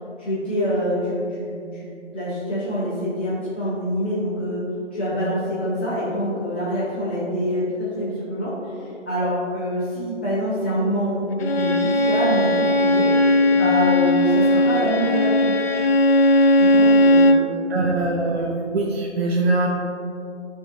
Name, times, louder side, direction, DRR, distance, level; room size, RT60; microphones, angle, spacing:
voice 1, 0.2-4.6 4.9-13.1 13.5-15.5 16.6-17.9 18.3-18.5, equal, 10° left, -13 dB, 0.7 m, -26 dB
Bowed string instrument, 11.4-17.5, left 1 dB, 55° left, 0.4 m, -17 dB
voice 2, 17.7-19.7, right 2 dB, 60° right, -1 dB, 0.7 m, -22 dB
9.9 x 3.6 x 2.7 m, 2.5 s
hypercardioid pair, 170°, 36 cm